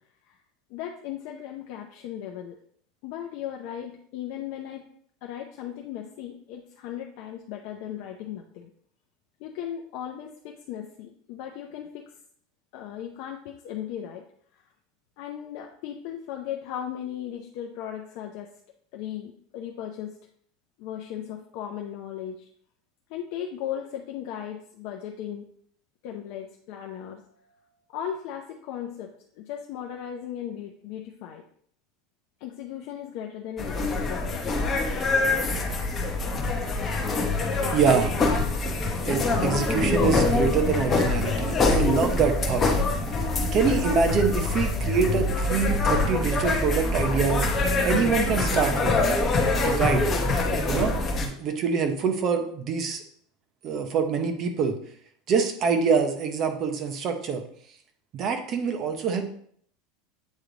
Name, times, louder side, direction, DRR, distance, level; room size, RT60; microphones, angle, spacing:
voice 1, 0.7-2.6 3.0-4.8 5.2-8.7 9.4-12.1 12.7-14.2 14.5-14.7 15.2-18.5 18.9-20.2 20.8-22.5 23.1-25.5 26.0-31.4 32.4-34.4, left 10 dB, 50° left, 2 dB, 0.6 m, -37 dB
sound 1, 33.6-51.3, left 3 dB, 15° left, 0.8 m, -25 dB
voice 2, 37.7-38.1 39.0-42.6 43.5-47.5 47.8-48.9 49.6-50.1 50.7-53.0 53.6-54.8 55.3-57.4 58.1-59.3, right 5 dB, 30° right, 6 dB, 0.8 m, -25 dB
8.3 x 3.2 x 3.9 m, 0.63 s
supercardioid pair, 175°, 0 cm